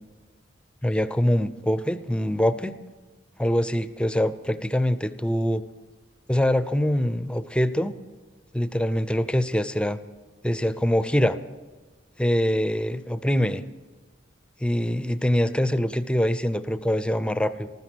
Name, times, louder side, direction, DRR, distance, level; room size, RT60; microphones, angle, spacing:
voice 1, 0.8-2.8 3.4-5.6 6.3-7.9 8.5-10.0 10.4-11.4 12.2-13.6 14.6-17.7, equal, 5° left, 12 dB, 0.6 m, -24 dB
14.0 x 13.5 x 6.2 m, 1.3 s
head